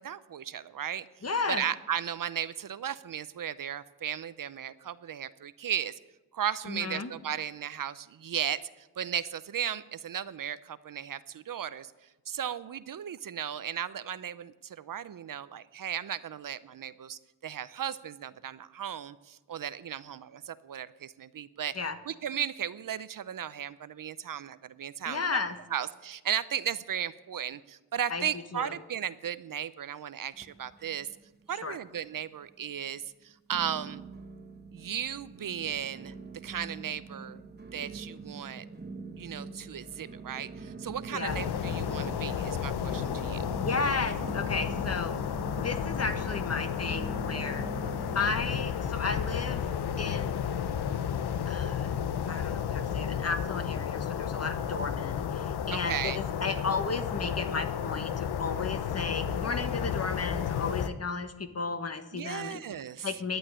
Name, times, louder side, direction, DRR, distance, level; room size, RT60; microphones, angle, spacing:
voice 1, 0.0-1.1 1.5-5.9 6.3-8.6 9.0-11.9 12.3-21.7 22.1-25.4 25.7-31.1 31.5-34.0 34.7-36.1 36.4-37.4 37.7-38.6 39.2-43.4 55.7-56.2 62.1-63.1, right 9 dB, 55° right, 15 dB, 0.7 m, -35 dB
voice 2, 1.2-1.6 6.7-7.1 21.7-22.0 25.0-25.6 28.1-28.3 28.5-28.8 31.6-31.8 41.1-41.4 43.6-45.2 45.6-47.7 48.1-49.7 50.0-50.3 51.5-62.6 63.0-63.4, left 4 dB, 40° left, 9 dB, 1.4 m, -34 dB
sound 1, 30.3-31.3 31.6-32.2 32.7-32.8 33.5-48.7, right 4 dB, 25° right, 1.3 m, -43 dB
sound 2, 41.2-60.9, left 8 dB, 75° left, 0.9 m, -32 dB
11.5 x 9.0 x 10.0 m, 1.1 s
cardioid pair, 75°, 39 cm